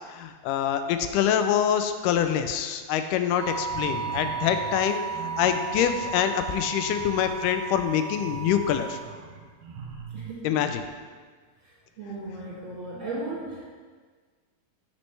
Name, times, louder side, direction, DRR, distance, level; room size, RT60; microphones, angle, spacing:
voice 1, 0.1-5.0 5.4-9.0 10.4-10.8, left 9 dB, 85° left, 8 dB, 1.9 m, -25 dB
sound 1, 3.4-9.0, right 5 dB, 70° left, 3.2 m, -34 dB
sound 2, 3.6-10.4, right 5 dB, 75° right, 1.5 m, -42 dB
voice 2, 10.1-10.4 11.6-13.7, right 2 dB, 50° right, -6 dB, 1.7 m, -36 dB
9.6 x 7.4 x 3.3 m, 1.5 s
omnidirectional pair, 4.2 m